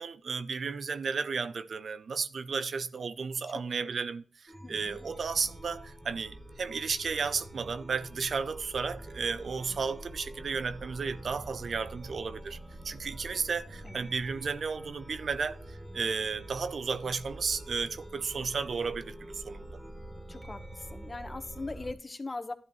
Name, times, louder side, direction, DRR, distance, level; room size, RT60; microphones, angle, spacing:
voice 1, 0.0-12.6 12.8-19.8, right 5 dB, 65° right, 0.6 m, -33 dB
voice 2, 3.5-4.0 4.6-5.0 13.8-14.1 20.3-22.5, left 3 dB, 35° left, 1.3 m, -41 dB
Chime, 4.5-21.9, right 1 dB, 20° right, 2.7 m, -46 dB
12.0 x 11.0 x 3.2 m
supercardioid pair, 45°, 0 cm